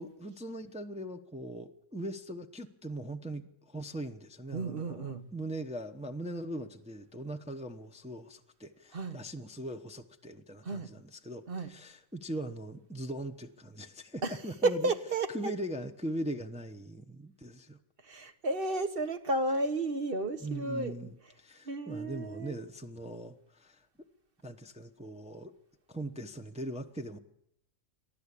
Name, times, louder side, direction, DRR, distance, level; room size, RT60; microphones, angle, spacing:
voice 1, 0.0-14.9 15.3-17.8 20.4-23.9 24.4-25.5 25.9-27.2, right 1 dB, 5° right, 5 dB, 0.8 m, -40 dB
voice 2, 4.5-5.2 8.9-9.2 10.6-10.9 11.5-11.7 14.2-15.5 18.0-20.9 21.6-22.6, right 2 dB, 45° right, 9 dB, 1.5 m, -32 dB
23.0 x 14.0 x 8.4 m, 0.74 s
omnidirectional pair, 1.3 m